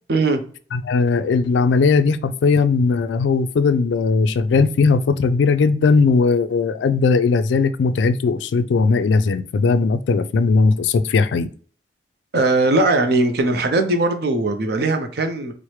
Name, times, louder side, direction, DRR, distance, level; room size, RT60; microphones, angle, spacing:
voice 1, 0.1-0.4 12.3-15.5, right 2 dB, 60° right, 0.6 m, -19 dB
voice 2, 0.7-11.5, left 4 dB, 80° left, 0.3 m, -18 dB
4.4 x 2.1 x 3.1 m
head